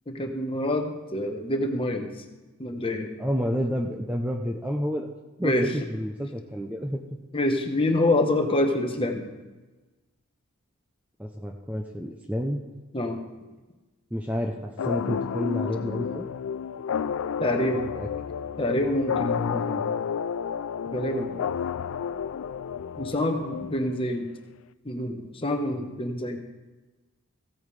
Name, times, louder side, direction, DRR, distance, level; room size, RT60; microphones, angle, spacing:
voice 1, 0.1-2.1 2.6-3.1 5.4-5.7 7.3-9.3 12.9-13.2 17.4-17.8 18.6-19.8 20.9-21.4 23.0-24.3 24.8-26.4, left 1 dB, 25° left, 4 dB, 0.9 m, -26 dB
voice 2, 3.2-5.1 5.4-7.0 11.2-12.6 14.1-16.3 17.9-18.1, equal, 5° right, 2 dB, 0.5 m, -29 dB
sound 1, 14.8-24.2, left 7 dB, 65° left, 0.3 m, -31 dB
15.5 x 8.7 x 3.2 m, 1.2 s
head